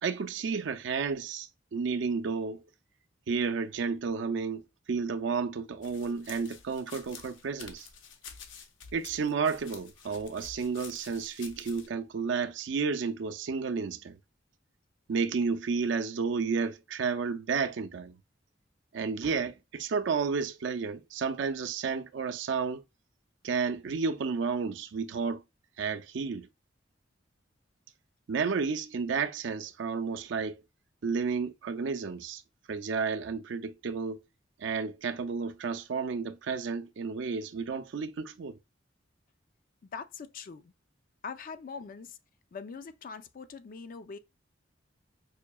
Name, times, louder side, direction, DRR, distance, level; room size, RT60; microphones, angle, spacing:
voice 1, 0.0-2.6 3.3-4.6 4.9-7.9 8.9-14.2 15.1-18.2 18.9-22.8 23.4-25.4 25.8-26.5 28.3-30.6 31.0-32.4 32.7-34.2 34.6-38.6, right 5 dB, 70° right, 0.4 m, -31 dB
sound 1, 5.8-11.9, left 6 dB, 80° left, 0.7 m, -49 dB
voice 2, 39.9-40.7 41.2-42.2 42.5-44.2, left 5 dB, 45° left, 0.4 m, -42 dB
4.9 x 2.7 x 2.2 m
head